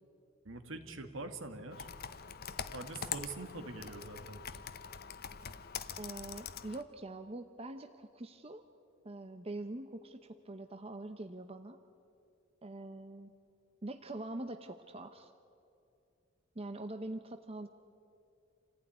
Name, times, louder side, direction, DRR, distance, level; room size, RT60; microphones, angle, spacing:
voice 1, 0.4-1.9 2.7-4.4, right 2 dB, 65° right, 8 dB, 1.9 m, -44 dB
Computer keyboard, 1.7-6.8, left 7 dB, 45° left, 0.8 m, -44 dB
voice 2, 6.0-8.6 9.0-11.8 12.6-13.3 13.8-15.3 16.5-17.7, right 2 dB, 30° right, 8 dB, 0.8 m, -44 dB
27.0 x 15.5 x 9.9 m, 2.6 s
head